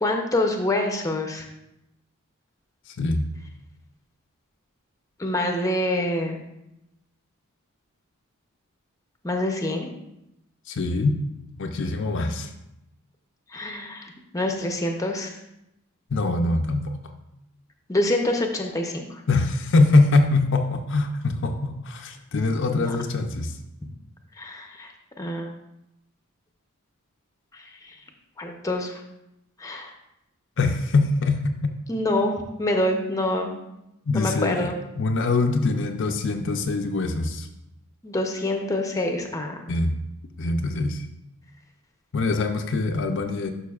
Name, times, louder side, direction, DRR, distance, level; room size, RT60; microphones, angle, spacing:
voice 1, 0.0-1.5 5.2-6.4 9.2-9.9 13.5-15.3 17.9-19.2 22.7-22.9 24.4-24.9 25.2-25.5 27.5-28.0 28.4-29.0 29.6-29.9 31.9-33.5 34.1-34.7 38.0-39.6, left 1 dB, 15° left, 3 dB, 0.6 m, -26 dB
voice 2, 3.0-3.3 10.7-11.2 11.6-12.5 16.1-16.9 19.3-23.5 30.6-31.7 34.1-34.7 35.0-37.5 39.7-40.0 40.4-41.0 42.1-43.5, left 3 dB, 55° left, 4 dB, 0.5 m, -23 dB
11.5 x 5.6 x 2.4 m, 0.86 s
head